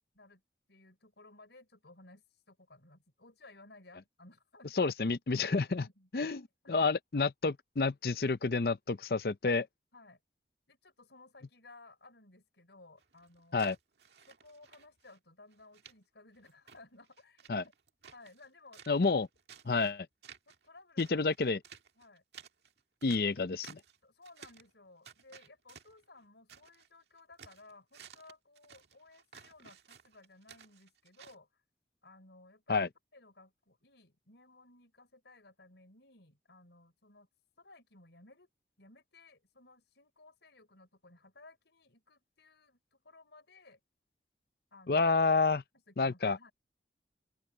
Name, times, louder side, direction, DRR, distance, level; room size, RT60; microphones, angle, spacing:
voice 1, 0.7-4.9 5.4-6.3 6.8-6.9 9.9-10.2 10.7-13.6 14.3-17.7 18.1-19.1 20.5-21.3 22.0-22.2 24.0-31.6 32.0-37.3 37.6-38.5 38.8-43.8 44.7-45.1 45.9-46.5, left 2 dB, 80° left, 5.2 m, -58 dB
voice 2, 4.7-5.8 6.1-6.4 6.7-9.7 13.5-13.8 17.5-17.6 18.9-19.3 19.6-20.1 21.0-21.6 23.0-23.8 32.7-32.9 44.9-45.6 46.0-46.4, left 4 dB, 55° left, 0.6 m, -29 dB
sound 1, 13.0-15.2 15.5-15.9 16.3-18.5 18.7-19.9 20.2-20.7 21.0-24.0 24.2-24.7 25.0-26.9 27.2-31.4, right 7 dB, 75° right, 1.9 m, -55 dB
open air
head